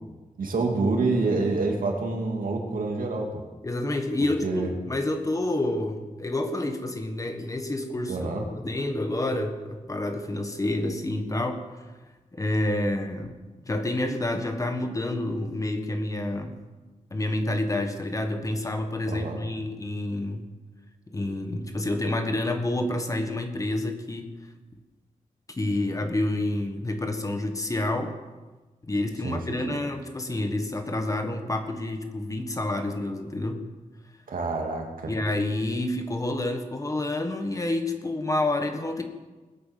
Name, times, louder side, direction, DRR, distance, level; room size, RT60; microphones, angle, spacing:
voice 1, 0.4-3.3 4.4-4.7 8.1-8.4 19.1-19.4 29.2-29.4 29.6-29.8 34.3-35.1, right 3 dB, 85° right, 1 dB, 2.8 m, -27 dB
voice 2, 3.6-11.6 12.3-13.4 13.7-16.6 17.1-20.5 21.1-24.3 25.5-28.1 28.9-33.6 35.0-39.0, left 1 dB, 25° left, 6 dB, 1.5 m, -28 dB
20.5 x 8.4 x 7.5 m, 1.2 s
wide cardioid pair, 170°, 14 cm